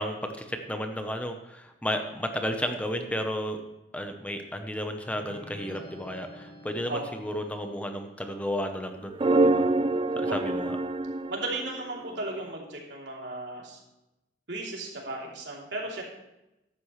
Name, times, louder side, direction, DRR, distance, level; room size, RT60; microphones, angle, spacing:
voice 1, 0.0-3.6 3.9-9.7 10.2-10.8, equal, 10° left, 5 dB, 0.8 m, -33 dB
sound 1, 5.0-7.8, equal, 55° left, 2.7 m, -48 dB
sound 2, 9.1-12.5, right 2 dB, 30° right, 0.4 m, -26 dB
voice 2, 11.3-13.8 14.5-16.0, right 2 dB, 80° right, -2 dB, 3.1 m, -35 dB
14.0 x 11.5 x 3.2 m, 0.94 s
head